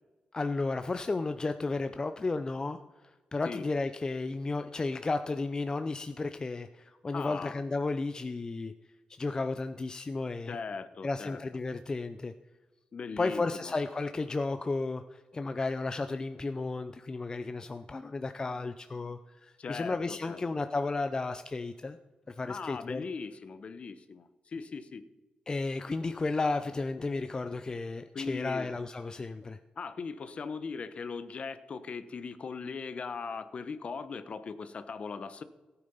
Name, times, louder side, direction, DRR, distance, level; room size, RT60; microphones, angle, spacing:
voice 1, 0.3-8.7 9.2-10.6 11.0-12.3 13.2-22.0 22.3-23.0 25.5-29.6, left 3 dB, 25° left, 9 dB, 0.5 m, -33 dB
voice 2, 7.1-7.6 10.5-11.4 12.9-13.7 19.6-20.4 22.5-25.0 28.1-28.7 29.8-35.4, left 5 dB, 50° left, 12 dB, 0.9 m, -39 dB
14.5 x 8.6 x 5.5 m, 1.2 s
cardioid pair, 100°, 3 cm